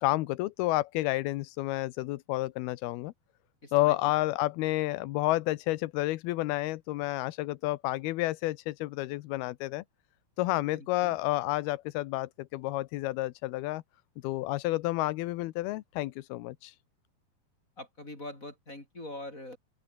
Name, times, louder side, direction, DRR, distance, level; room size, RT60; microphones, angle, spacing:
voice 1, 0.0-3.1 3.7-9.8 10.4-13.8 14.2-16.8, left 18 dB, 75° left, 2.6 m, -30 dB
voice 2, 3.6-4.0 10.7-11.2 17.8-19.6, left 1 dB, 20° left, 6.0 m, -43 dB
open air
omnidirectional pair, 4.7 m